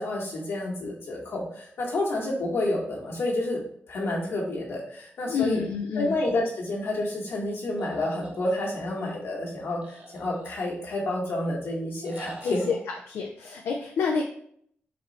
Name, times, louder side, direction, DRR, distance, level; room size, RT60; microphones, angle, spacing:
voice 1, 0.0-5.6 5.9-12.6, left 1 dB, 75° left, -3 dB, 1.5 m, -29 dB
voice 2, 5.3-6.1 12.4-12.8 13.1-14.2, left 5 dB, 90° left, 1 dB, 0.5 m, -28 dB
sound 1, 7.8-9.1 9.8-11.0 12.0-12.8, right 2 dB, 35° right, 1.2 m, -45 dB
4.1 x 3.1 x 4.1 m, 0.65 s
cardioid pair, 105°, 4 cm